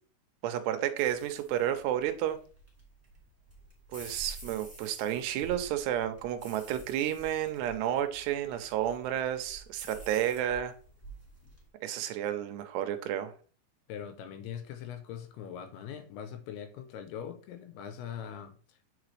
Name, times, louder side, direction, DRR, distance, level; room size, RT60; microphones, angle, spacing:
voice 1, 0.4-2.4 3.9-10.7 11.8-13.3, right 11 dB, 85° right, 8 dB, 2.8 m, -31 dB
sound 1, 0.9-11.6, right 2 dB, 10° left, 1.0 m, -50 dB
voice 2, 13.9-18.9, left 8 dB, 80° left, 8 dB, 2.6 m, -42 dB
8.7 x 4.8 x 3.2 m, 0.40 s
omnidirectional pair, 4.9 m